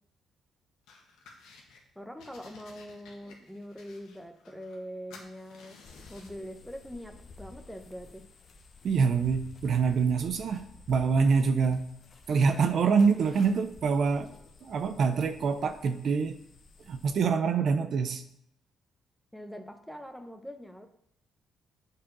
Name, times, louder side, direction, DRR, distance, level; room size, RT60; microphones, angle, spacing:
sound 1, 0.9-1.8 2.2-4.8 5.1-6.4, left 4 dB, 90° left, 1.5 m, -54 dB
voice 1, 2.0-5.8 6.1-8.3 11.7-11.8 19.3-20.9, equal, ahead, 7 dB, 0.9 m, -43 dB
sound 2, 5.8-17.3, left 3 dB, 50° left, 1.0 m, -52 dB
voice 2, 8.8-11.8 12.3-14.3 14.6-16.4 16.9-18.2, right 5 dB, 60° right, 9 dB, 0.6 m, -25 dB
7.2 x 4.8 x 6.1 m, 0.74 s
cardioid pair, 90°, 0 cm